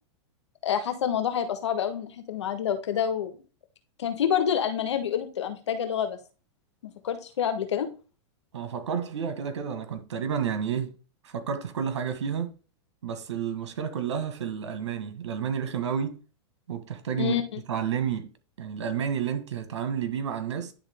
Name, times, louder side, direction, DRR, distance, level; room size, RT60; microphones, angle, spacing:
voice 1, 0.6-3.3 4.0-6.2 7.0-7.9 17.2-17.6, left 8 dB, 85° left, 1.5 m, -27 dB
voice 2, 8.5-10.9 11.2-12.5 13.0-16.2 16.7-17.3 17.7-18.3 18.6-20.7, right 7 dB, 80° right, 1.7 m, -30 dB
10.5 x 3.7 x 3.6 m
hypercardioid pair, 125°, 15 cm